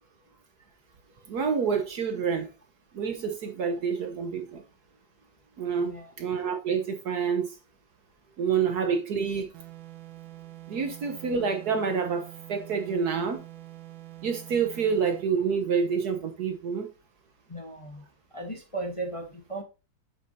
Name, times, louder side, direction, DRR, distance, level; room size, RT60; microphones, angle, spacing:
voice 1, 1.3-2.5 2.9-4.6 5.6-7.6 8.4-9.5 10.7-13.4 14.2-16.9, right 6 dB, 60° right, 1.3 m, -28 dB
voice 2, 5.7-6.1 17.5-18.0 18.3-19.6, right 2 dB, 20° left, 1.1 m, -36 dB
sound 1, 9.5-15.4, right 16 dB, 80° right, 1.5 m, -46 dB
7.7 x 7.0 x 2.7 m
omnidirectional pair, 2.2 m